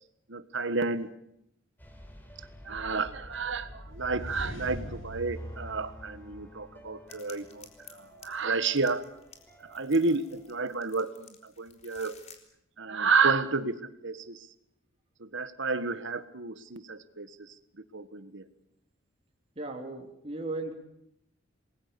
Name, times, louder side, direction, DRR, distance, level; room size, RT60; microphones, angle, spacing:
voice 1, 0.3-1.1 2.6-9.0 9.6-12.1 12.8-14.5 15.2-17.3 17.9-18.4, right 4 dB, 65° right, 12 dB, 1.6 m, -30 dB
sound 1, 1.8-10.8, equal, 10° left, 4.5 m, -50 dB
sound 2, 3.9-6.9, equal, 75° left, 4.2 m, -41 dB
sound 3, 7.1-12.4, left 6 dB, 35° left, 3.9 m, -54 dB
voice 2, 19.6-20.7, right 2 dB, 30° right, 2 dB, 3.0 m, -36 dB
27.5 x 21.0 x 6.9 m, 0.77 s
head